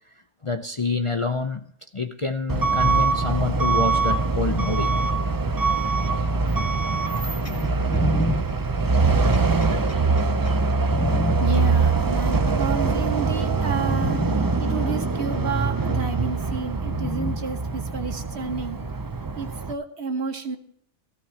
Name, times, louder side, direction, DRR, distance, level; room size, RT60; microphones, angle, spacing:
voice 1, 0.4-1.6 1.9-4.9, left 3 dB, 30° left, 0.6 m, -27 dB
Truck / Alarm, 2.5-19.7, right 3 dB, 35° right, 0.3 m, -23 dB
sound 1, 7.4-11.4 12.3-13.0 13.5-13.6 13.9-14.4 15.5-15.6 16.9-17.4 18.5-18.6, left 1 dB, 15° left, 1.4 m, -29 dB
voice 2, 11.4-18.8 19.3-20.6, right 5 dB, 60° right, 1.6 m, -31 dB
17.0 x 15.5 x 2.9 m
omnidirectional pair, 1.2 m